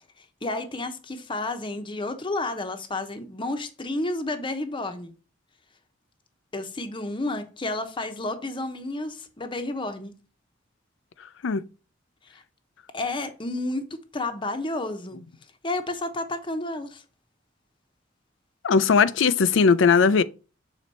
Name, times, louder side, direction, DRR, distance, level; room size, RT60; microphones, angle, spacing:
voice 1, 0.2-5.1 6.5-10.1 12.3-12.4 12.9-15.2 15.6-17.0, left 2 dB, 25° left, 0.8 m, -31 dB
voice 2, 18.6-20.2, left 5 dB, 75° left, 0.5 m, -19 dB
6.9 x 4.1 x 4.2 m
head